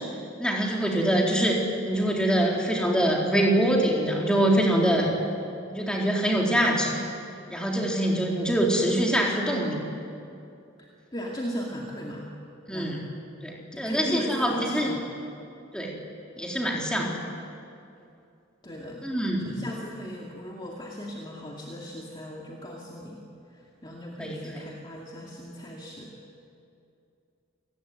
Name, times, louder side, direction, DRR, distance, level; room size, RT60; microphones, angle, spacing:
voice 1, 0.4-1.6 1.8-5.1 5.7-6.9 7.5-9.9 12.7-13.0 13.4-15.0 15.7-15.9 16.4-17.2 19.0-19.6 24.2-24.6, right 1 dB, 5° left, -2 dB, 3.9 m, -24 dB
voice 2, 10.8-12.3 12.7-12.9 13.7-15.1 18.6-23.2 23.5-26.1, equal, 20° left, -2 dB, 2.3 m, -37 dB
28.5 x 19.5 x 9.4 m, 2.6 s
head